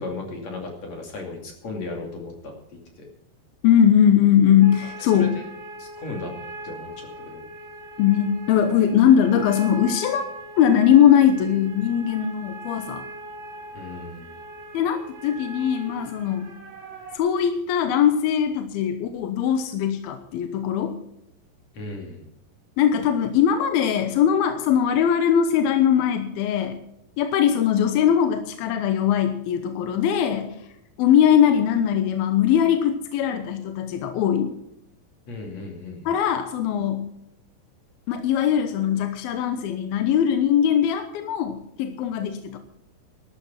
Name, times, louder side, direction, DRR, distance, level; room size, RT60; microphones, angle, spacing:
voice 1, 0.0-2.5 3.0-3.1 5.1-5.4 5.8-6.3 6.6-7.4 13.7-14.4 21.7-22.3 35.3-36.2, left 3 dB, 45° left, 1 dB, 3.4 m, -35 dB
voice 2, 3.6-5.4 8.0-10.2 10.6-13.1 14.7-16.5 17.1-21.0 22.8-26.8 27.2-30.6 31.0-34.5 36.1-37.1 38.1-42.6, left 9 dB, 75° left, 8 dB, 2.6 m, -20 dB
sound 1, 4.6-17.2, right 2 dB, 45° right, 3.6 m, -40 dB
12.5 x 12.5 x 5.8 m, 0.79 s
omnidirectional pair, 4.8 m